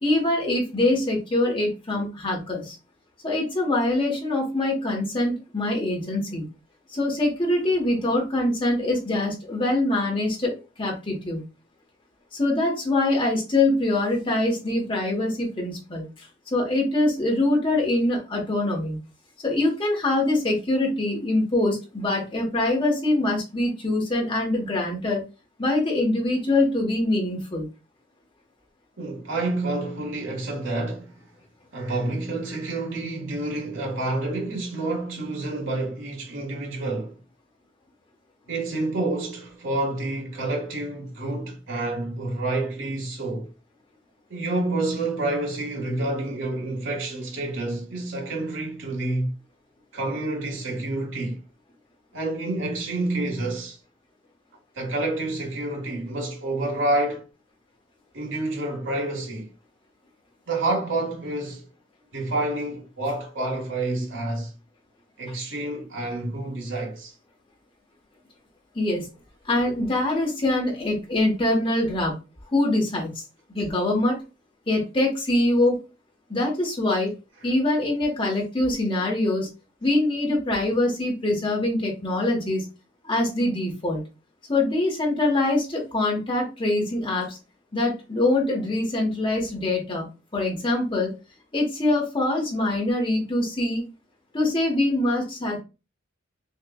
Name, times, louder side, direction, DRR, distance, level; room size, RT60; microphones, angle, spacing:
voice 1, 0.0-2.7 3.2-6.4 6.9-11.4 12.3-19.0 19.4-25.2 25.6-27.7 68.7-69.1 69.4-72.2 72.5-73.1 73.5-74.2 74.7-75.8 76.3-77.1 77.4-79.5 79.8-82.7 83.0-84.0 84.5-87.4 87.7-90.0 90.3-91.1 91.5-93.9 94.3-95.6, left 2 dB, 25° left, 1.2 m, -24 dB
voice 2, 29.0-31.2 31.7-37.2 38.5-43.5 44.3-49.3 49.9-51.4 52.1-53.8 54.7-57.2 58.1-59.5 60.5-61.7 62.1-64.5 65.2-67.1, right 2 dB, 70° right, 1.6 m, -28 dB
6.4 x 2.4 x 2.4 m
head